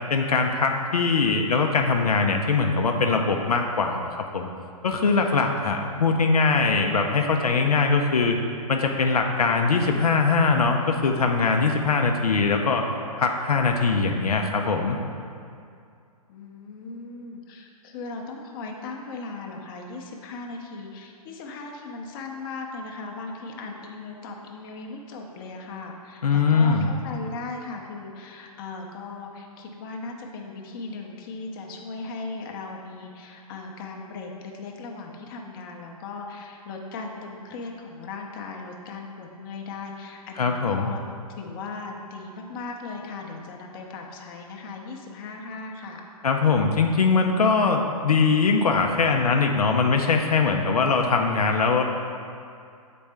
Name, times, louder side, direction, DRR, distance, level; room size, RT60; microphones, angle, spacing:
voice 1, 0.1-4.5 4.8-8.4 8.7-12.9 13.2-15.0 26.2-26.9 40.4-40.9 46.2-51.8, left 4 dB, 80° left, 3 dB, 0.6 m, -22 dB
voice 2, 16.3-41.0 41.4-46.0, left 3 dB, 35° left, 1 dB, 0.8 m, -38 dB
7.2 x 4.2 x 3.4 m, 2.4 s
hypercardioid pair, 130°, 19 cm